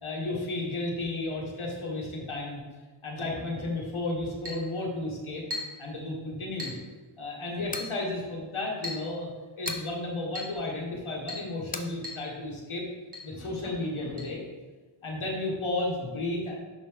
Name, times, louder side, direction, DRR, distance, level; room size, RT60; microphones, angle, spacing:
voice 1, 0.0-2.6 3.0-5.4 5.8-6.8 7.2-9.3 9.6-12.8 13.2-14.4 15.0-16.5, left 2 dB, 75° left, -2 dB, 1.6 m, -33 dB
Chink clink, 4.4-4.7 5.5-5.8 6.6-6.8 7.7-8.0 8.8-9.1 9.7-9.9 10.3-10.6 11.3-11.5 12.0-12.2 12.5-12.6 13.1-13.3 14.2-14.3, left 2 dB, 55° right, 1.6 m, -37 dB
sound 1, 7.7-8.0 9.7-9.9 11.7-11.9, left 3 dB, 20° left, 0.4 m, -37 dB
5.8 x 5.3 x 3.6 m, 1.3 s
wide cardioid pair, 80°, 49 cm